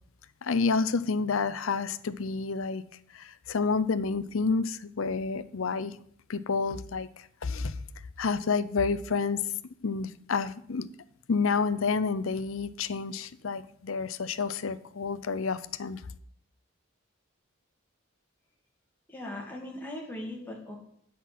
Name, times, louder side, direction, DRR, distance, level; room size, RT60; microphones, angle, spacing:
voice 1, 0.4-2.8 3.1-6.0 6.3-7.1 7.4-7.7 8.2-9.4 9.8-10.9 11.3-16.0, left 4 dB, 80° left, 15 dB, 0.6 m, -29 dB
voice 2, 19.1-20.8, left 1 dB, 10° left, -1 dB, 2.2 m, -39 dB
8.3 x 6.0 x 7.5 m, 0.65 s
head